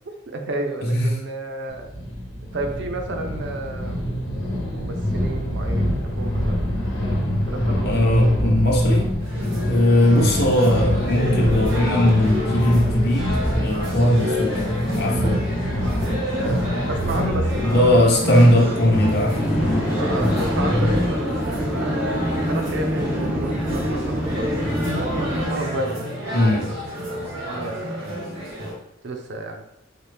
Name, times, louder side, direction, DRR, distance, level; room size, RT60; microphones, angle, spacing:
voice 1, 0.3-1.9 2.5-4.2 4.7-6.7 7.5-8.2 9.7-9.9 16.4-18.0 19.9-28.3 29.0-29.6, right 2 dB, 65° right, 4 dB, 0.5 m, -32 dB
sound 1, 1.7-21.2, equal, 90° left, 1.0 m, -24 dB
voice 2, 7.7-9.1 9.7-14.6 15.0-15.4 17.6-20.0 26.3-26.6, left 1 dB, 55° left, -1 dB, 0.8 m, -19 dB
sound 2, 9.2-28.7, equal, 90° right, 1.3 m, -29 dB
sound 3, 19.3-25.5, equal, 5° right, 0.3 m, -26 dB
4.1 x 2.1 x 3.3 m, 0.75 s
head